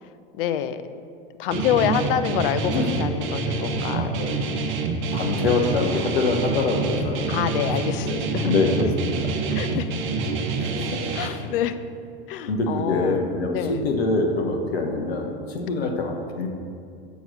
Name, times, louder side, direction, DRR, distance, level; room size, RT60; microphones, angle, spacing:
voice 1, 0.3-0.8 1.4-4.5 5.5-6.0 7.3-8.5 8.8-8.9 9.5-9.9 11.1-11.8 12.3-13.2 13.5-13.8 15.7-16.0, left 10 dB, 60° left, 11 dB, 0.7 m, -27 dB
Guitar, 1.5-11.3, right 4 dB, 40° right, 1.1 m, -27 dB
voice 2, 5.1-7.3 8.0-8.2 8.4-9.3 10.6-11.4 12.5-16.5, left 3 dB, 75° left, 3 dB, 1.2 m, -25 dB
7.0 x 6.2 x 6.4 m, 2.4 s
hypercardioid pair, 90°, 31 cm